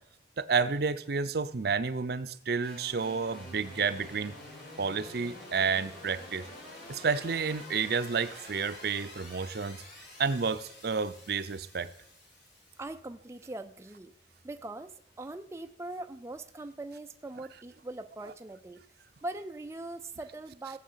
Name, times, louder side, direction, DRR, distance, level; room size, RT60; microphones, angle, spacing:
voice 1, 0.4-4.3 4.8-6.4 6.9-9.8 10.2-11.9, right 5 dB, 60° right, 13 dB, 0.6 m, -30 dB
sound 1, 2.6-12.8, left 1 dB, 75° left, 6.4 m, -48 dB
voice 2, 12.8-14.1 14.4-18.8 19.2-20.8, right 2 dB, 15° right, 7 dB, 0.4 m, -41 dB
16.5 x 7.6 x 5.6 m, 0.68 s
head